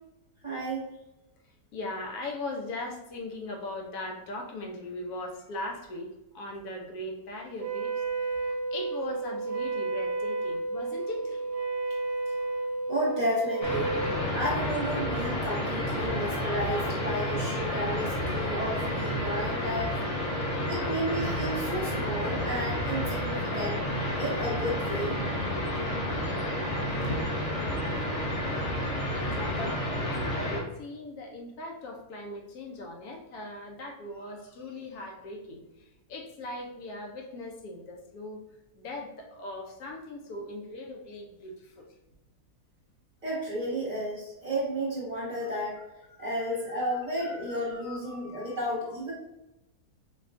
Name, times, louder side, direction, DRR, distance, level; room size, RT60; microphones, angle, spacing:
voice 1, 0.4-0.8 12.9-13.9 14.3-19.9 20.7-25.2 43.2-45.8 46.2-49.1, equal, 30° right, -7 dB, 1.0 m, -32 dB
voice 2, 1.7-7.9 8.7-11.4 27.0-27.2 28.0-28.1 29.1-29.8 30.0-35.6 36.1-38.4 38.8-41.9 46.1-48.6, left 2 dB, 75° left, 1 dB, 1.1 m, -39 dB
Wind instrument woodwind instrument, 7.6-14.2, right 3 dB, 70° right, 0.8 m, -32 dB
sound 1, 13.6-30.6, left 1 dB, 55° left, 0.3 m, -30 dB
4.6 x 2.3 x 2.4 m, 0.94 s
omnidirectional pair, 1.6 m